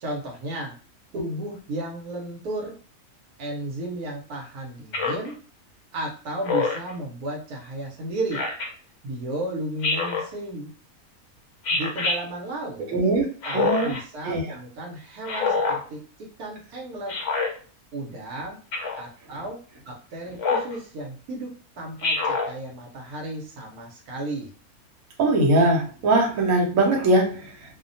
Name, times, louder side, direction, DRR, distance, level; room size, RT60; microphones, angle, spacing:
voice 1, 0.0-0.8 1.1-2.8 3.4-5.4 5.9-8.4 9.0-10.7 11.7-13.0 13.4-17.2 17.9-18.6 18.9-24.5, right 1 dB, 85° right, -1 dB, 1.2 m, -34 dB
Speech synthesizer, 4.9-5.3 6.4-6.9 8.3-8.7 9.8-10.3 11.6-12.2 13.4-14.0 15.2-15.8 17.1-17.5 18.7-19.0 20.4-20.7 22.0-22.5, left 4 dB, 60° left, 0.8 m, -25 dB
voice 2, 12.9-13.3 13.5-13.9 14.2-14.4 25.2-27.6, right 2 dB, 70° right, 0 dB, 1.1 m, -21 dB
2.8 x 2.1 x 2.5 m, 0.39 s
omnidirectional pair, 1.6 m